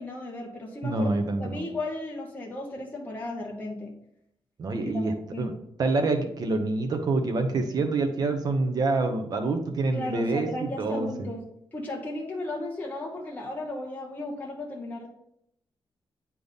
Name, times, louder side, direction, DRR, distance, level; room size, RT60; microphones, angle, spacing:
voice 1, 0.0-3.9 4.8-5.5 9.9-11.4 11.7-15.1, left 2 dB, 20° left, -1 dB, 1.0 m, -35 dB
voice 2, 0.8-1.6 4.6-5.5 5.8-11.3, right 3 dB, 45° right, 5 dB, 0.9 m, -27 dB
8.7 x 3.5 x 4.0 m, 0.76 s
wide cardioid pair, 175°, 9 cm